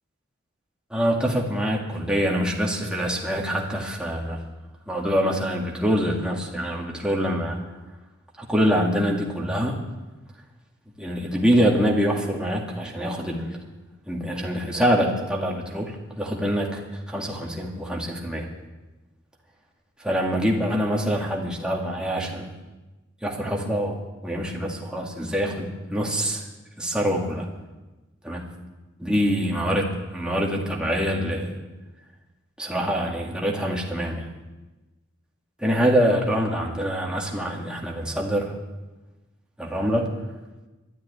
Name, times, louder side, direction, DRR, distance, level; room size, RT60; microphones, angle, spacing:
voice 1, 0.9-4.4 4.9-7.6 8.4-9.8 11.0-13.6 14.1-18.5 20.0-22.5 23.2-26.4 26.8-27.5 28.2-28.4 29.0-31.6 32.6-34.3 35.6-38.5 39.6-40.2, equal, 5° right, -2 dB, 2.2 m, -25 dB
13.0 x 10.5 x 9.8 m, 1.1 s
head